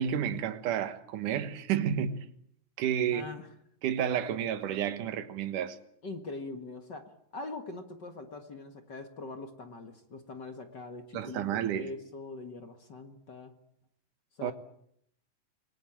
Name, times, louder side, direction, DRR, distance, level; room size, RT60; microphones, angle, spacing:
voice 1, 0.0-2.3 2.8-3.2 3.8-5.8 11.1-11.9 14.4-14.5, right 9 dB, 75° right, 2.9 m, -31 dB
voice 2, 3.1-3.5 6.0-13.5 14.4-14.5, left 3 dB, 40° left, 1.8 m, -42 dB
27.5 x 20.0 x 8.8 m
omnidirectional pair, 3.8 m